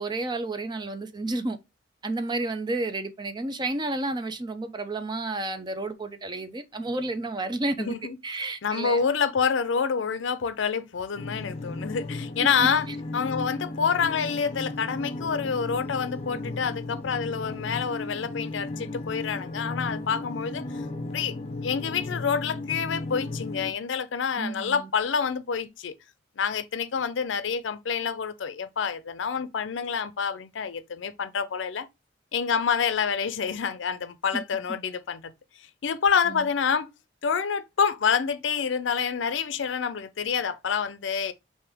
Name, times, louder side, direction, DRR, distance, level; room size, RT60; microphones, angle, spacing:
voice 1, 0.0-1.6 2.0-7.9 8.2-9.1 12.9-13.0 24.4-24.9 34.3-34.4 36.3-36.5, right 2 dB, 25° right, 0.5 m, -31 dB
voice 2, 7.8-8.2 8.6-12.9 13.1-20.6 21.1-21.3 21.6-25.9 26.4-31.9 32.3-35.3 35.8-36.9 37.2-41.3, left 6 dB, 75° left, 0.5 m, -27 dB
sound 1, 11.1-23.7, left 2 dB, 35° left, 0.6 m, -35 dB
5.1 x 2.6 x 3.4 m
head